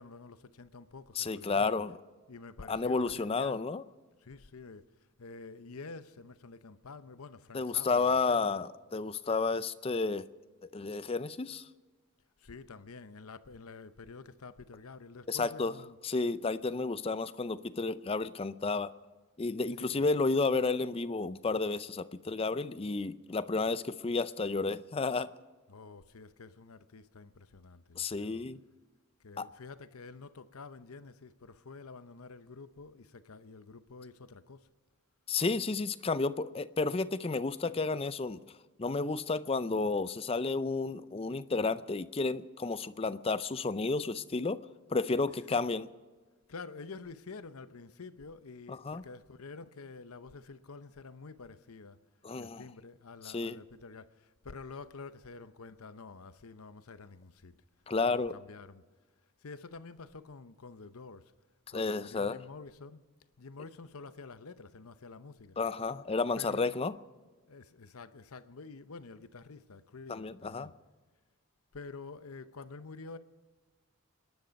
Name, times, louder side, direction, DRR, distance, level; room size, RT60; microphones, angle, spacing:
voice 1, 0.0-1.7 2.3-3.6 4.2-8.6 12.4-16.0 19.8-20.1 25.7-28.5 29.2-34.7 45.1-45.7 46.5-52.0 52.4-57.6 58.0-58.8 59.4-61.3 61.7-63.0 63.4-65.6 66.4-66.7 67.5-70.7 71.7-73.2, left 4 dB, 80° left, 0.8 m, -48 dB
voice 2, 1.2-2.0 2.7-3.8 7.5-10.2 10.6-11.7 15.3-15.7 16.0-18.9 19.4-25.3 28.0-28.6 29.4-29.5 35.3-38.4 38.8-44.6 44.9-45.9 48.7-49.0 52.2-52.6 53.2-53.6 57.9-58.3 61.7-62.4 65.6-66.9 70.1-70.7, left 3 dB, 25° left, 0.4 m, -31 dB
26.0 x 10.5 x 5.2 m
head